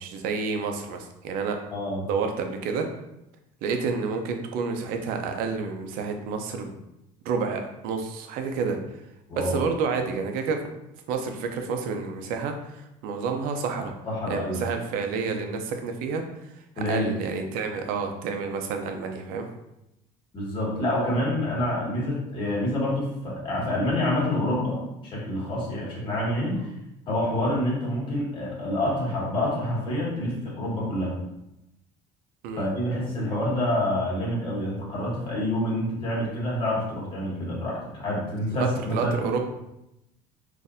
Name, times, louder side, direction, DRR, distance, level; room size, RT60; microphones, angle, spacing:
voice 1, 0.0-1.6 2.0-2.9 3.6-6.7 7.2-8.8 9.4-10.6 11.1-13.9 14.3-16.2 16.9-19.5 26.5-26.7 32.4-32.7 38.5-39.4, right 5 dB, 75° right, 5 dB, 0.5 m, -29 dB
voice 2, 1.7-2.0 9.3-9.6 14.0-14.6 16.8-17.1 20.3-24.8 25.1-26.7 27.1-31.2 32.6-39.2, left 1 dB, 35° left, -5 dB, 1.5 m, -27 dB
4.0 x 2.6 x 2.6 m, 0.87 s
cardioid pair, 135°, 15 cm